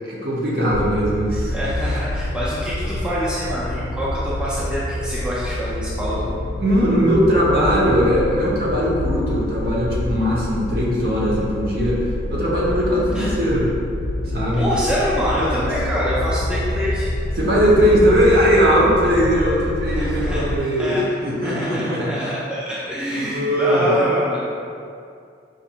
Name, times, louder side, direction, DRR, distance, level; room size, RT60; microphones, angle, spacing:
voice 1, 0.0-1.5 6.1-6.2 6.6-12.0 12.3-13.7 14.3-14.7 15.6-15.7 17.4-22.3 23.1-23.9, equal, 55° right, -6 dB, 0.8 m, -19 dB
sound 1, 0.7-20.6, left 1 dB, 80° left, 0.3 m, -27 dB
voice 2, 1.3-6.2 13.1-13.3 14.2-17.1 19.8-21.0 21.4-24.4, equal, 5° right, -9 dB, 0.4 m, -26 dB
4.9 x 2.5 x 2.8 m, 2.4 s
head